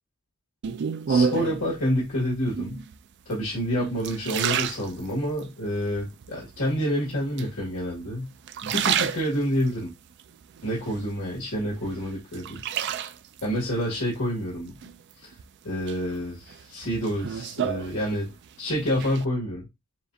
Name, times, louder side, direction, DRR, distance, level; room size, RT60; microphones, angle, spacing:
sound 1, 0.6-1.7 2.5-3.0 3.5-5.5 6.0-6.6 7.4-8.1 8.4-9.7 10.2-11.4 11.8-13.5 14.8-15.4 15.9-18.5 18.7-19.2, right 7 dB, 55° right, 0.3 m, -29 dB
voice 1, 1.1-2.8 3.3-8.3 8.6-9.9 10.6-12.4 13.4-14.7 15.2-15.3 15.6-18.3 18.6-19.7, equal, 80° left, 1.9 m, -28 dB
7.2 x 2.4 x 2.6 m
head